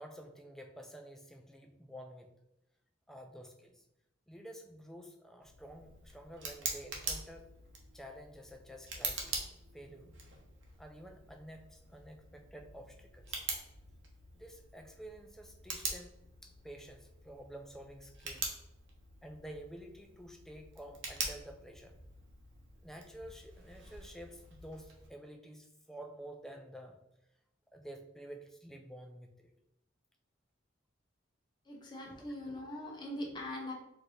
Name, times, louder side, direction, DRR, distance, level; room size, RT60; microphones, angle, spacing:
voice 1, 0.0-2.3 3.1-3.8 4.3-7.5 7.9-9.5 9.7-10.1 10.8-13.4 14.3-16.1 16.4-18.5 19.2-21.9 22.8-27.0 27.7-29.5 32.1-32.3, right 1 dB, ahead, 4 dB, 0.3 m, -50 dB
Tick, 5.4-25.1, right 4 dB, 60° right, 0.8 m, -44 dB
voice 2, 31.7-33.7, left 1 dB, 20° left, -1 dB, 0.8 m, -41 dB
4.4 x 2.6 x 3.2 m, 0.84 s
head